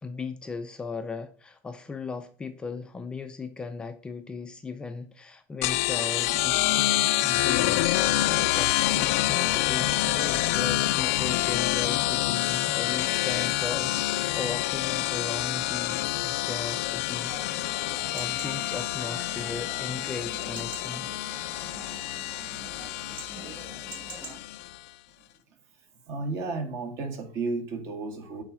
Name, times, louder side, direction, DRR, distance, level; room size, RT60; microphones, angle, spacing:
voice 1, 0.0-8.1 8.5-17.4 18.1-21.1, left 4 dB, 15° left, 0.5 m, -37 dB
sound 1, 5.6-24.8, left 16 dB, 85° left, 0.5 m, -27 dB
Chatter / Livestock farm animals working animals / Chirp tweet, 17.2-24.4, right 3 dB, 25° right, 2.0 m, -45 dB
voice 2, 26.1-28.4, right 3 dB, 45° right, 1.7 m, -32 dB
8.8 x 3.9 x 6.0 m
cardioid pair, 165°, 7 cm